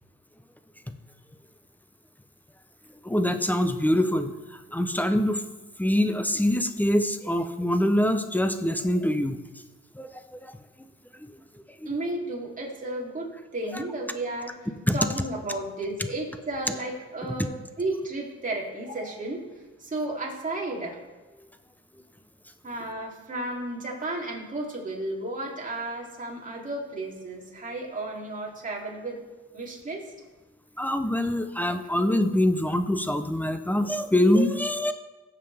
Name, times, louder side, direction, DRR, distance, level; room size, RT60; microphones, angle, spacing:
voice 1, 3.0-5.4 5.8-9.4 9.9-10.6 11.8-11.9 14.9-15.1 30.8-34.9, left 1 dB, 5° left, 8 dB, 0.7 m, -24 dB
voice 2, 11.8-14.6 14.9-19.4 19.8-21.0 22.6-29.2 29.5-30.1, right 2 dB, 25° right, -2 dB, 3.0 m, -33 dB
17.0 x 7.5 x 3.4 m, 1.2 s
cardioid pair, 90°, 30 cm